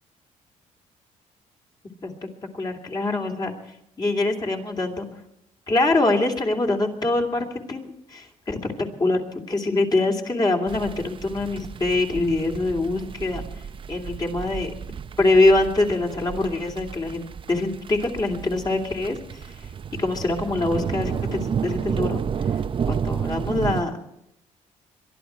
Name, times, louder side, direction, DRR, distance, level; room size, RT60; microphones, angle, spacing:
voice 1, 2.5-3.5 4.0-5.1 5.7-13.4 13.9-14.7 15.2-19.5 20.0-22.2 22.5-22.6 22.9-24.0, left 2 dB, 30° left, 1 dB, 2.9 m, -24 dB
sound 1, 10.7-23.8, right 7 dB, 40° right, 0.6 m, -31 dB
22.5 x 12.5 x 4.5 m, 0.78 s
cardioid pair, 95°, 14 cm